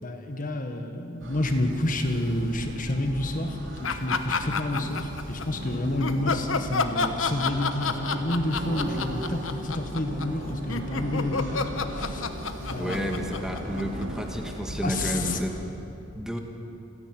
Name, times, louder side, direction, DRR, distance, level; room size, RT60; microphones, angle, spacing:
voice 1, 0.0-12.2 12.7-13.5 14.8-15.4, left 1 dB, 45° left, 5 dB, 1.5 m, -29 dB
sound 1, 1.2-15.5, equal, 65° right, 3.5 m, -37 dB
sound 2, 3.8-5.4 6.0-14.3, left 5 dB, 85° left, 1.1 m, -29 dB
voice 2, 12.8-15.5 16.1-16.4, equal, 5° right, 3 dB, 1.7 m, -31 dB
28.0 x 10.5 x 9.3 m, 2.8 s
head